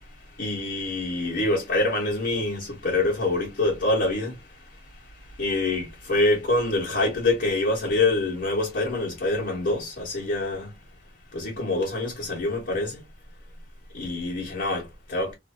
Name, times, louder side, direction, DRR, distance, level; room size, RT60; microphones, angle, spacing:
voice 1, 0.0-10.7 11.3-13.0 13.9-15.3, left 2 dB, 55° left, 1.4 m, -26 dB
3.0 x 2.6 x 2.6 m
head